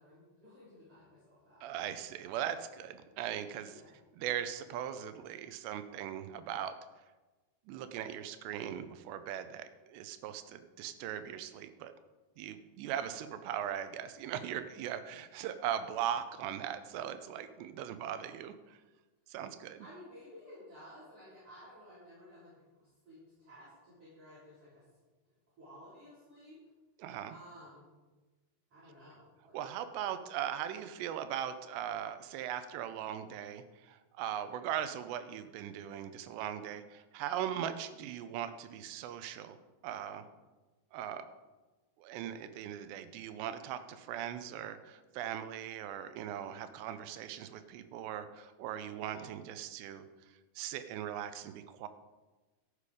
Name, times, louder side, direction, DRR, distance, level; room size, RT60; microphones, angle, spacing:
voice 1, 0.0-1.6 3.7-3.9 19.8-24.8 25.6-26.6 27.3-27.9 28.7-29.6, equal, 35° right, -11 dB, 4.5 m, -54 dB
voice 2, 1.6-3.8 4.2-6.8 7.7-11.9 12.4-18.8 19.3-19.9 27.0-27.4 29.5-39.6 39.8-40.2 40.9-41.3 42.0-50.1 50.6-51.9, right 10 dB, 80° right, 10 dB, 2.8 m, -39 dB
13.5 x 8.5 x 5.0 m, 1.2 s
omnidirectional pair, 5.1 m